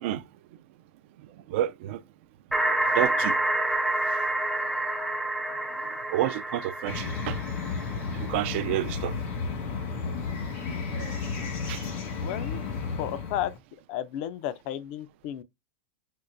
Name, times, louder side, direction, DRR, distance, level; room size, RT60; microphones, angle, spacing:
voice 1, 1.5-2.0 2.9-3.4 6.1-7.4 8.1-9.1 10.9-11.1 11.7-11.8, right 13 dB, 65° right, 0.4 m, -29 dB
sound 1, 2.5-8.2, right 1 dB, ahead, 0.5 m, -28 dB
sound 2, 6.9-13.6, left 5 dB, 75° left, 1.6 m, -33 dB
voice 2, 12.2-12.6 13.0-13.5 13.9-15.4, left 11 dB, 55° left, 0.4 m, -33 dB
4.4 x 2.1 x 2.5 m
supercardioid pair, 130°, 7 cm